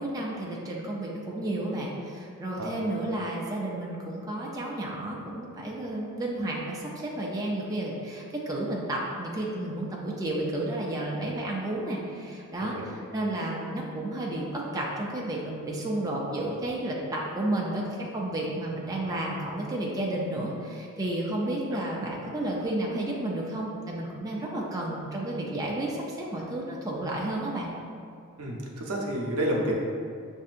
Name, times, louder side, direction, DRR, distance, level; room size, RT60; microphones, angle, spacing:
voice 1, 0.0-17.8 18.1-27.7, right 1 dB, 15° right, -4 dB, 0.4 m, -32 dB
voice 2, 28.4-29.7, right 1 dB, 75° right, -2 dB, 0.7 m, -30 dB
6.4 x 2.7 x 2.5 m, 2.4 s
head